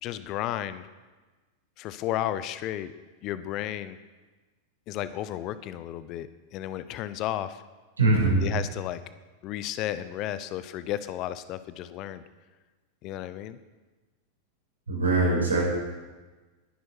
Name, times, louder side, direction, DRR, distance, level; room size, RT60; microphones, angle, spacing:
voice 1, 0.0-0.9 1.8-2.9 3.2-4.0 4.9-7.6 8.4-9.0 9.4-12.2 13.0-13.6, left 12 dB, 40° left, 14 dB, 0.8 m, -33 dB
voice 2, 8.0-8.4 14.9-15.6, right 2 dB, 75° right, -2 dB, 5.8 m, -22 dB
20.5 x 11.0 x 4.7 m, 1.2 s
figure-of-eight pair, 90°, 0 cm